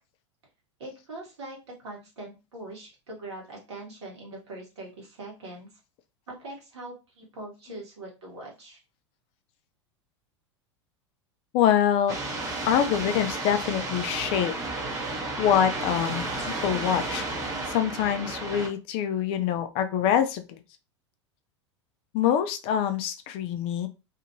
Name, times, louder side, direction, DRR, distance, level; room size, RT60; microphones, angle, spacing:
voice 1, 0.8-5.7 6.3-8.8, right 2 dB, 65° right, -1 dB, 1.4 m, -42 dB
voice 2, 11.5-12.2 12.7-14.5 15.4-17.3 17.7-20.6 22.1-23.9, left 9 dB, 40° left, 8 dB, 0.4 m, -25 dB
sound 1, 12.1-18.7, right 2 dB, 20° right, 0.9 m, -32 dB
2.8 x 2.5 x 2.8 m, 0.28 s
figure-of-eight pair, 85°, 15 cm